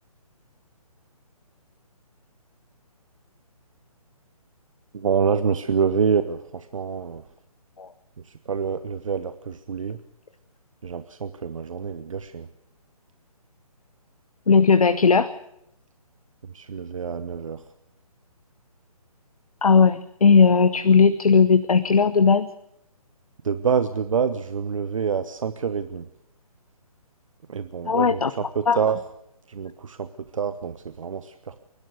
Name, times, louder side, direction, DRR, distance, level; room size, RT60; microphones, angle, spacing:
voice 1, 4.9-7.2 8.2-10.0 10.8-12.5 16.4-17.6 23.4-26.1 27.5-29.0 29.5-31.7, right 6 dB, 55° right, 11 dB, 1.1 m, -27 dB
voice 2, 14.5-15.3 19.6-22.5 27.8-28.3 28.7-28.8, left 5 dB, 70° left, 13 dB, 1.0 m, -17 dB
28.5 x 12.0 x 8.1 m, 0.78 s
figure-of-eight pair, 145°, 20 cm